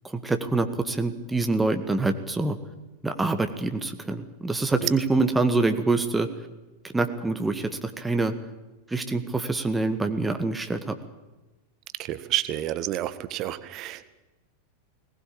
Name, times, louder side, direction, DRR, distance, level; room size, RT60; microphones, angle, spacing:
voice 1, 0.0-2.6 3.0-6.3 6.9-8.3 8.9-10.9, right 3 dB, 10° right, 7 dB, 1.8 m, -25 dB
voice 2, 12.0-14.0, right 14 dB, 35° right, 14 dB, 1.6 m, -30 dB
21.0 x 19.5 x 8.7 m, 1.1 s
figure-of-eight pair, 90°, 0 cm